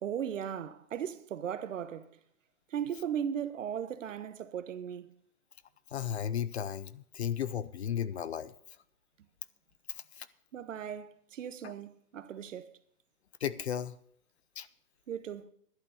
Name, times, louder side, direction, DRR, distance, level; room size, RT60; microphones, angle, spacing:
voice 1, 0.0-2.1 2.7-5.1 10.5-12.8 15.1-15.5, right 9 dB, 55° right, 1.1 m, -37 dB
voice 2, 5.9-8.5 10.2-10.3 11.6-11.7 13.4-13.9 14.6-14.7, left 9 dB, 45° left, 0.5 m, -34 dB
11.5 x 8.4 x 7.0 m
hypercardioid pair, 160°, 45 cm